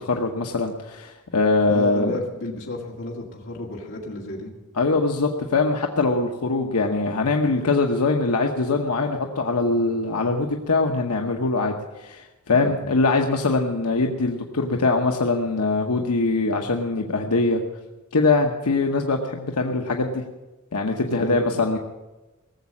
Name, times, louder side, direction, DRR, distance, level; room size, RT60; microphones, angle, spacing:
voice 1, 0.0-2.2 4.8-17.6 18.1-20.2 20.7-21.8, left 3 dB, 85° left, 2 dB, 1.0 m, -22 dB
voice 2, 1.7-4.5 12.5-12.9 21.1-21.8, left 2 dB, 60° left, -2 dB, 2.2 m, -33 dB
18.5 x 7.3 x 8.4 m, 1.1 s
head